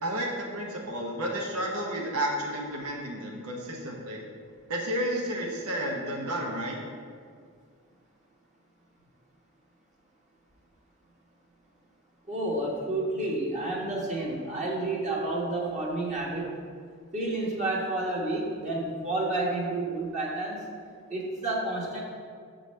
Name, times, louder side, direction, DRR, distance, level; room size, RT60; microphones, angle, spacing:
voice 1, 0.0-4.3 4.7-6.8, right 1 dB, 80° right, -1 dB, 1.0 m, -31 dB
voice 2, 12.3-16.5 17.1-20.6 21.1-22.0, right 2 dB, 35° right, -3 dB, 1.2 m, -30 dB
6.8 x 3.9 x 6.3 m, 2.1 s
head